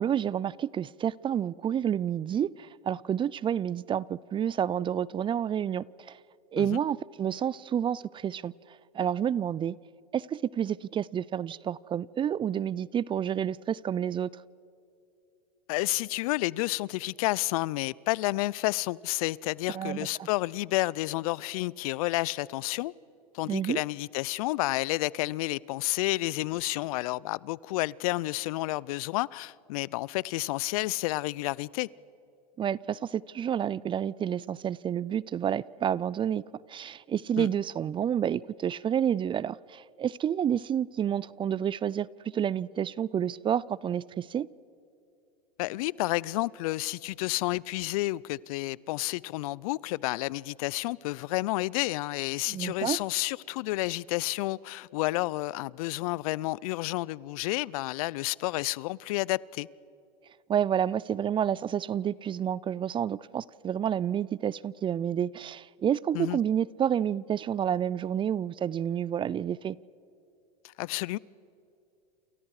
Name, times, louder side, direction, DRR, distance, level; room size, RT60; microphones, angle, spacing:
voice 1, 0.0-6.2 6.5-8.5 8.9-9.8 10.1-14.3 19.7-20.1 23.5-23.8 32.6-36.4 36.7-44.5 52.5-53.0 60.5-69.8, right 9 dB, 25° right, 0.5 m, -29 dB
voice 2, 15.7-22.9 23.3-31.9 37.4-37.5 45.6-59.7 66.1-66.4 70.8-71.2, left 19 dB, 65° left, 0.6 m, -30 dB
29.0 x 29.0 x 4.9 m
hypercardioid pair, 100°, 20 cm